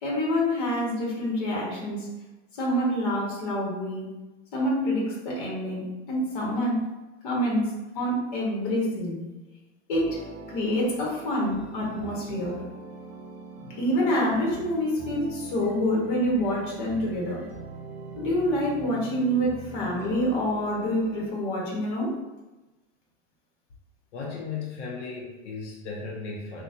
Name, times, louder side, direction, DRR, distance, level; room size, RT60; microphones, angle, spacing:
voice 1, 0.0-2.1 2.6-4.1 4.5-6.9 7.2-9.2 9.9-10.2 10.5-12.6 13.8-17.5 18.2-22.1, equal, 45° left, -3 dB, 1.2 m, -27 dB
sound 1, 9.9-21.3, right 2 dB, 25° right, 1.0 m, -42 dB
voice 2, 24.1-26.6, left 4 dB, 85° left, -2 dB, 0.8 m, -36 dB
3.9 x 2.4 x 2.5 m, 1.1 s
supercardioid pair, 170°, 34 cm